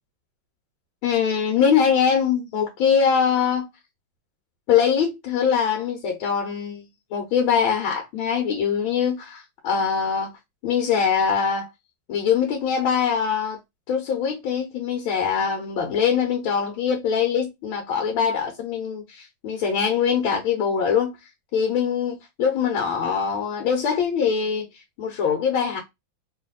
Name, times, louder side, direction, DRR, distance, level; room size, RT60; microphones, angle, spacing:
voice 1, 1.0-3.7 4.7-6.8 7.1-10.3 10.6-11.7 12.1-13.6 13.9-21.1 21.5-24.7 25.0-25.8, left 7 dB, 75° left, 1.6 m, -23 dB
3.5 x 2.5 x 3.9 m
omnidirectional pair, 2.3 m